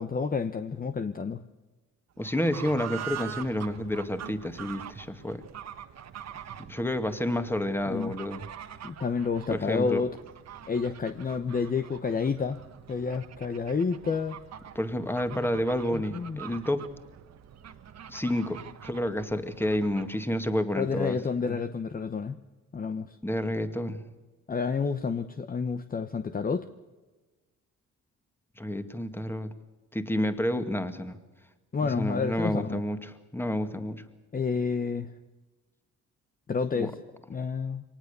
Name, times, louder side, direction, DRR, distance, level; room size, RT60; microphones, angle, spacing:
voice 1, 0.0-1.4 7.9-8.1 8.8-10.1 10.7-12.6 12.9-14.4 15.3-15.5 15.9-16.4 20.8-22.4 22.7-23.1 24.5-26.6 31.7-32.8 34.3-35.1 36.5-36.9 37.3-37.8, left 5 dB, 30° left, 9 dB, 1.0 m, -29 dB
voice 2, 2.2-5.4 6.7-8.4 9.5-10.0 14.8-16.9 18.1-21.2 21.4-21.6 23.2-24.0 28.6-29.5 29.9-31.2 31.8-34.0 36.8-36.9, left 1 dB, 5° left, 8 dB, 2.1 m, -30 dB
Fowl / Bird, 2.2-20.2, right 9 dB, 60° right, 1.4 m, -44 dB
24.0 x 19.0 x 6.9 m, 1.2 s
cardioid pair, 90°, 30 cm